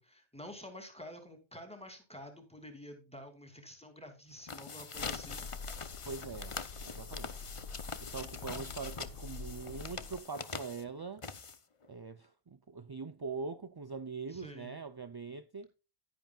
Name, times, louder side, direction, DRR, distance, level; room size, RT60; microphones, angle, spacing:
voice 1, 0.0-5.5 14.3-14.7, left 1 dB, 5° left, 2.7 m, -49 dB
sound 1, 4.3-11.9, left 5 dB, 35° left, 0.8 m, -43 dB
sound 2, 4.9-10.2, left 4 dB, 70° left, 1.0 m, -46 dB
voice 2, 6.0-6.6 6.8-7.3 8.0-11.2 11.9-15.7, right 4 dB, 35° right, 0.4 m, -42 dB
11.5 x 10.5 x 2.3 m
omnidirectional pair, 1.0 m